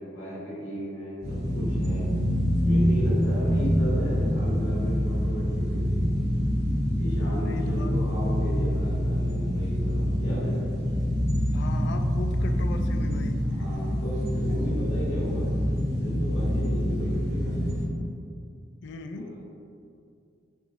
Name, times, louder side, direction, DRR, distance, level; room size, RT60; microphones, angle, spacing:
voice 1, 0.0-2.1 2.6-6.1 7.0-10.6 13.4-15.5 16.0-17.8 19.1-19.4, equal, 90° left, -8 dB, 1.3 m, -35 dB
sound 1, 1.2-17.8, equal, 60° right, 1.5 m, -26 dB
voice 2, 7.4-7.9 11.5-13.4 16.4-16.9 18.8-19.3, left 3 dB, 65° left, 6 dB, 0.3 m, -39 dB
4.8 x 3.6 x 2.5 m, 2.4 s
head